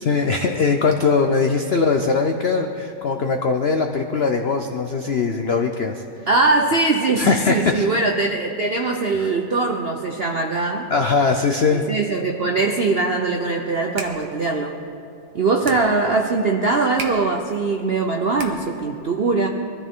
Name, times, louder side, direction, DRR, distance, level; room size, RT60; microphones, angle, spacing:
voice 1, 0.0-6.0 7.2-7.9 10.9-11.9, left 4 dB, 85° left, 5 dB, 0.5 m, -20 dB
voice 2, 6.3-10.9 11.7-14.7 15.3-19.5, right 3 dB, 70° right, 3 dB, 0.5 m, -21 dB
sound 1, 13.7-18.9, right 4 dB, 85° right, 1.9 m, -39 dB
22.5 x 14.0 x 3.7 m, 2.5 s
omnidirectional pair, 2.0 m